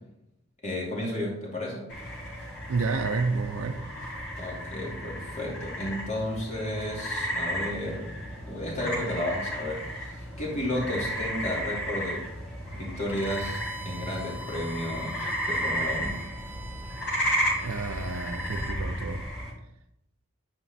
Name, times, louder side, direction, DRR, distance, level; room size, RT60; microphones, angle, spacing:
voice 1, 0.6-1.9 4.4-8.1 8.5-12.2 12.7-16.2, left 1 dB, 35° left, -3 dB, 2.6 m, -33 dB
sound 1, 1.9-19.5, equal, 55° left, 3.3 m, -33 dB
voice 2, 2.7-3.9 17.6-19.3, right 4 dB, 75° right, 4 dB, 0.5 m, -30 dB
Bowed string instrument, 13.1-18.8, right 1 dB, 10° right, 0.6 m, -44 dB
9.1 x 5.0 x 4.1 m, 0.83 s
head